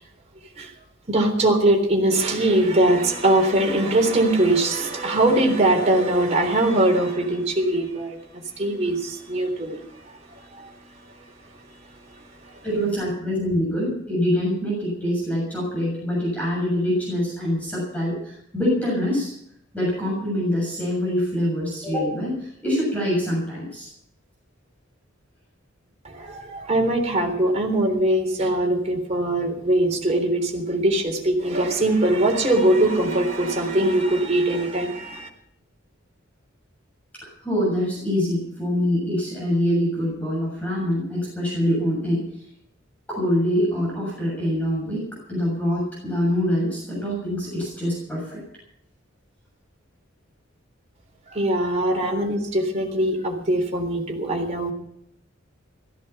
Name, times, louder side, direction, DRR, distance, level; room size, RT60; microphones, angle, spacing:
voice 1, 1.1-9.8 10.4-10.7 26.0-35.3 51.3-54.7, right 1 dB, 35° right, 1 dB, 3.7 m, -21 dB
voice 2, 12.6-19.3 19.7-23.9 37.2-42.3 43.1-45.0 45.3-48.4 51.9-52.1, equal, 5° left, -5 dB, 7.1 m, -24 dB
16.5 x 14.5 x 5.7 m, 0.72 s
head